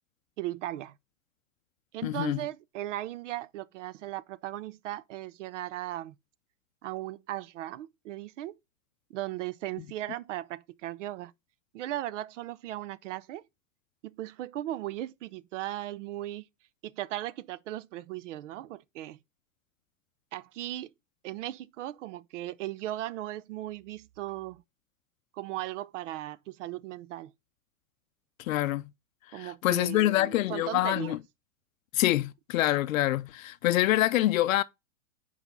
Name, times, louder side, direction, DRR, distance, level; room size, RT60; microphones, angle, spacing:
voice 1, 0.4-0.9 1.9-6.2 6.8-8.6 9.1-11.3 11.7-13.5 14.0-16.4 16.8-19.2 20.3-20.9 21.2-24.6 25.3-27.3 29.3-31.2, right 14 dB, 65° right, 0.6 m, -37 dB
voice 2, 2.0-2.4 28.4-28.8 29.3-31.2 31.9-34.6, left 15 dB, 85° left, 0.5 m, -26 dB
5.9 x 4.9 x 5.4 m
hypercardioid pair, 130°, 39 cm